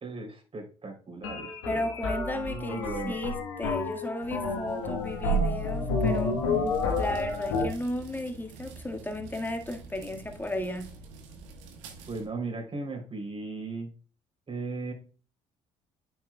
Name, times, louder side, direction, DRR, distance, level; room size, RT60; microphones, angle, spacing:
voice 1, 0.0-1.9 2.3-3.2 12.1-13.9 14.5-14.9, right 3 dB, 35° right, 3.4 m, -37 dB
sound 1, 1.2-7.6, left 2 dB, 80° left, 1.4 m, -29 dB
voice 2, 1.7-6.4 7.0-10.9, left 1 dB, 10° left, 1.7 m, -34 dB
sound 2, 4.2-12.3, right 4 dB, 80° right, 1.3 m, -47 dB
9.0 x 6.0 x 2.3 m
hypercardioid pair, 50°, 15 cm